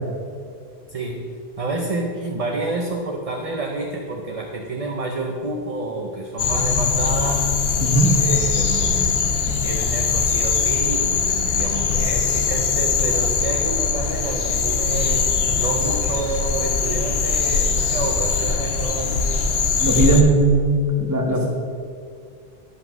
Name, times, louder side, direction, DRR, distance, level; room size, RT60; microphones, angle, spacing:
voice 1, 0.9-7.5 8.2-9.3 9.6-19.2 21.3-21.5, right 2 dB, 40° right, 1 dB, 0.8 m, -29 dB
sound 1, 6.4-20.2, left 5 dB, 80° left, 1.0 m, -21 dB
voice 2, 19.8-21.5, right 2 dB, 20° right, 0 dB, 1.2 m, -18 dB
11.5 x 5.7 x 6.0 m, 2.3 s
omnidirectional pair, 1.0 m